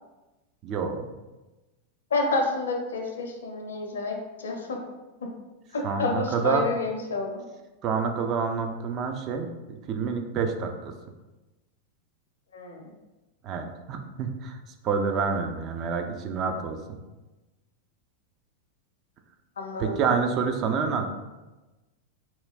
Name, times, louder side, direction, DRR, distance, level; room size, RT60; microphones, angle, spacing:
voice 1, 0.6-1.1 5.8-6.7 7.8-10.9 13.4-17.0 19.8-21.1, right 5 dB, 35° right, 5 dB, 0.3 m, -28 dB
voice 2, 2.1-4.8 5.2-5.3 5.7-7.4 12.5-12.9 19.6-20.0, left 3 dB, 65° left, 2 dB, 0.5 m, -29 dB
3.0 x 2.6 x 2.4 m, 1.1 s
figure-of-eight pair, 90°, 0 cm